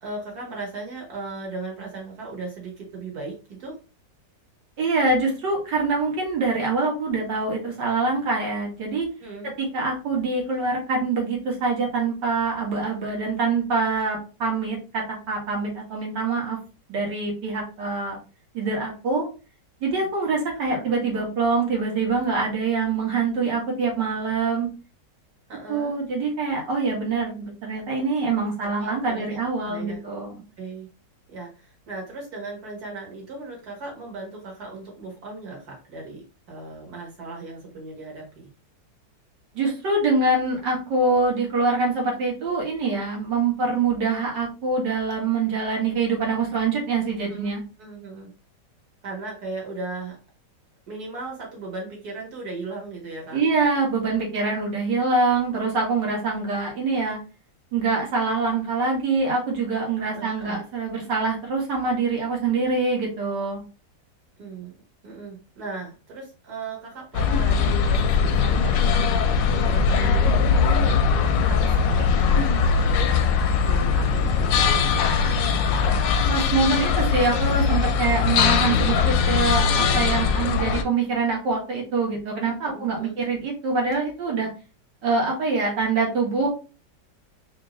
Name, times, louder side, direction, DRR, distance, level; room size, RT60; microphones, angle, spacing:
voice 1, 0.0-3.8 9.2-9.5 20.5-20.8 25.5-26.0 28.6-29.4 29.7-30.0 30.6-30.9 31.3-38.5 47.3-48.3 49.0-50.2 50.9-53.4 60.1-60.6 64.4-64.7 65.0-68.8 69.5-70.9 71.4-73.3 73.6-75.1 82.6-83.2, right 3 dB, 60° right, -2 dB, 2.1 m, -37 dB
voice 2, 4.8-9.1 9.6-16.6 16.9-18.2 18.5-19.3 19.8-24.7 25.7-30.4 39.6-47.6 53.3-57.2 57.7-63.6 76.3-84.5 85.0-86.5, right 3 dB, 75° right, -1 dB, 2.0 m, -24 dB
sound 1, 67.1-80.8, left 5 dB, 90° left, 1.3 m, -21 dB
4.3 x 2.7 x 3.1 m, 0.33 s
omnidirectional pair, 1.9 m